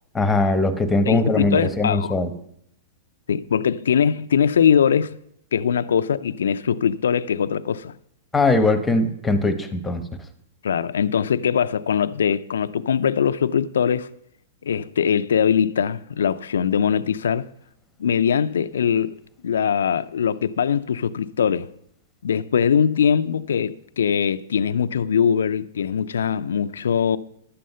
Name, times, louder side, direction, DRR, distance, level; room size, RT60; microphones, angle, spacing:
voice 1, 0.1-2.3 8.3-10.0, left 2 dB, 10° left, 1.1 m, -20 dB
voice 2, 1.1-2.1 3.3-5.2 5.5-8.0 10.6-14.1 14.6-17.5 18.0-19.2 19.4-21.7 22.2-27.2, left 7 dB, 85° left, 0.5 m, -21 dB
11.5 x 7.7 x 5.6 m
hypercardioid pair, 140°, 0 cm